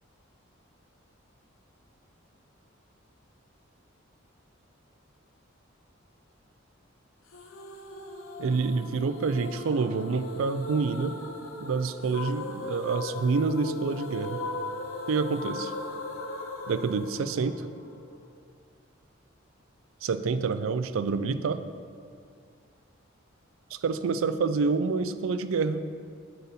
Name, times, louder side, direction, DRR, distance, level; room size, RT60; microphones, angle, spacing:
sound 1, 7.3-18.3, left 3 dB, 90° left, 0.8 m, -38 dB
voice 1, 8.4-11.1 11.6-14.4 15.1-15.7 16.7-17.7 20.0-21.6 23.7-25.8, right 4 dB, 85° right, 12 dB, 0.4 m, -27 dB
7.7 x 7.0 x 4.2 m, 2.2 s
head